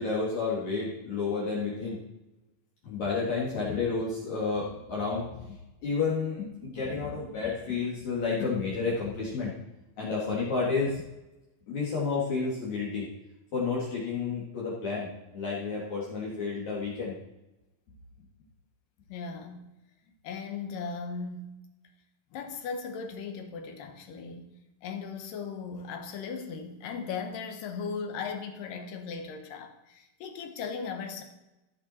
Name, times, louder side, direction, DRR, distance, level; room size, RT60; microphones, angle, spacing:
voice 1, 0.0-2.0 2.8-5.5 5.8-9.5 10.0-11.0 11.7-13.0 13.5-15.1 15.3-17.1, left 4 dB, 55° left, -6 dB, 3.2 m, -30 dB
voice 2, 19.1-19.7 20.2-21.6 22.3-24.5 24.8-31.2, left 5 dB, 70° left, 5 dB, 2.5 m, -37 dB
16.0 x 6.1 x 4.3 m, 0.97 s
omnidirectional pair, 4.3 m